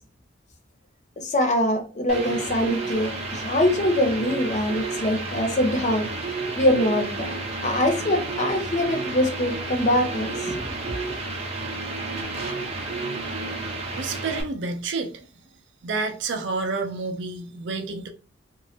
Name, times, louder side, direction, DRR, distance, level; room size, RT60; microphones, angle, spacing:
voice 1, 1.2-6.1 6.6-10.7, left 1 dB, 40° left, 0.6 m, -23 dB
sound 1, 2.1-14.4, right 3 dB, 35° right, 0.8 m, -31 dB
voice 2, 13.9-15.1 15.8-18.1, right 3 dB, 70° right, 0.5 m, -29 dB
3.0 x 2.6 x 2.7 m
head